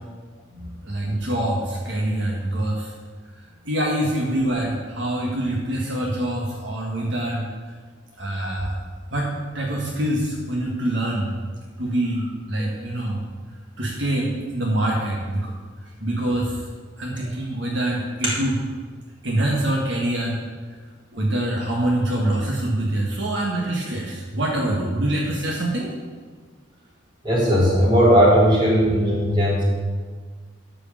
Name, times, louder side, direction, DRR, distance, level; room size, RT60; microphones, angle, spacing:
voice 1, 0.8-2.9 3.6-7.5 8.2-8.8 9.1-11.3 11.8-13.2 13.8-15.5 16.0-16.6 17.0-18.5 19.2-20.4 21.1-25.9, right 1 dB, 65° right, -3 dB, 1.6 m, -25 dB
voice 2, 27.2-29.6, equal, 25° right, -6 dB, 3.4 m, -17 dB
12.5 x 5.0 x 7.3 m, 1.5 s
head